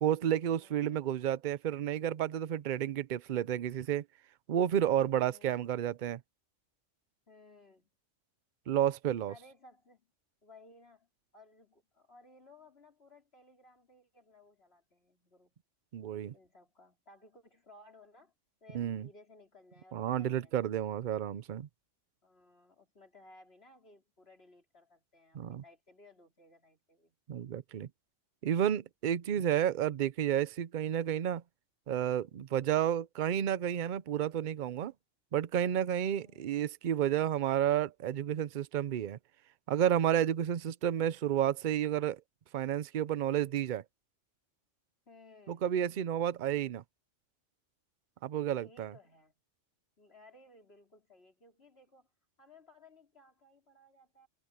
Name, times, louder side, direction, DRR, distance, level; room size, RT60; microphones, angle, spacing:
voice 1, 0.0-4.0 4.5-6.2 8.7-9.3 15.9-16.3 18.7-19.1 19.9-21.7 25.3-25.6 27.3-27.9 28.4-31.4 31.9-34.9 35.3-39.2 39.7-42.2 42.5-43.8 45.5-46.8 48.2-48.9, right 10 dB, 50° right, 0.6 m, -31 dB
voice 2, 0.6-1.0 5.2-5.6 7.3-7.9 9.3-10.1 10.4-15.6 16.3-18.3 18.6-20.9 22.2-27.2 36.1-36.5 45.1-45.7 48.5-49.4 50.0-52.1 52.4-54.3, left 2 dB, 55° left, 4.8 m, -60 dB
omnidirectional pair, 1.3 m